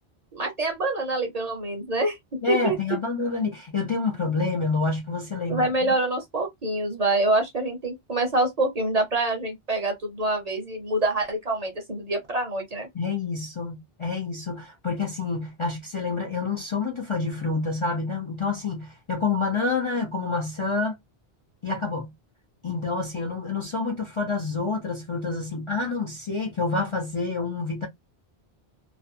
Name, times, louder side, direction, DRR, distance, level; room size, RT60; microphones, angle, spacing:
voice 1, 0.3-2.2 2.5-2.8 5.5-12.9, right 2 dB, 45° right, 0.6 m, -26 dB
voice 2, 2.4-5.7 12.9-21.0 21.6-22.1 22.6-27.9, left 4 dB, 40° left, 0.5 m, -28 dB
2.5 x 2.1 x 2.5 m
omnidirectional pair, 1.1 m